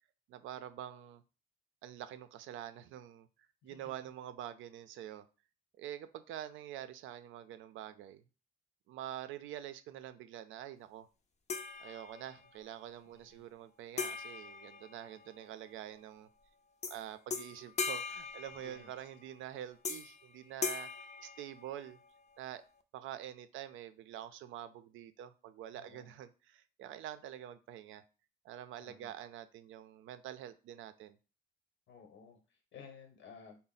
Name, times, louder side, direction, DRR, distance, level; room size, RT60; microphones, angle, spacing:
voice 1, 0.3-1.2 1.8-3.3 3.6-5.3 5.8-8.2 8.9-11.1 11.8-16.3 16.9-20.9 21.2-22.0 22.4-22.6 22.9-28.0 28.4-31.2, right 11 dB, 85° right, 11 dB, 0.4 m, -46 dB
voice 2, 3.6-3.9 13.1-13.4 18.6-18.9 25.7-26.1 28.8-29.1 31.9-33.6, left 6 dB, 65° left, 5 dB, 1.0 m, -55 dB
sound 1, 11.5-12.5 14.0-15.5 16.8-17.0 17.3-19.1 19.8-20.2 20.6-22.0, left 5 dB, 35° left, 0.5 m, -40 dB
3.8 x 2.0 x 4.0 m, 0.34 s
cardioid pair, 90°, 20 cm